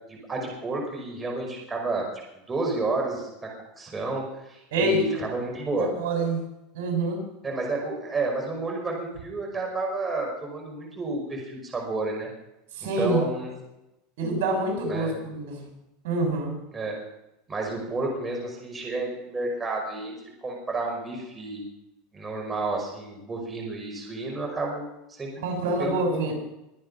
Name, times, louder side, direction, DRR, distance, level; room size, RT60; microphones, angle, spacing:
voice 1, 0.1-2.1 2.5-3.5 3.8-5.9 7.4-12.3 13.0-13.5 14.9-15.2 16.7-17.0 17.5-20.1 20.4-21.6 22.1-25.3 25.8-26.3, right 3 dB, 15° right, 0 dB, 5.3 m, -31 dB
voice 2, 4.7-5.2 5.7-6.4 6.7-7.2 12.7-13.2 14.2-15.7 16.0-16.5 25.4-26.3, right 2 dB, 75° right, 2 dB, 6.4 m, -26 dB
23.0 x 9.5 x 5.6 m, 0.90 s
supercardioid pair, 130°, 0 cm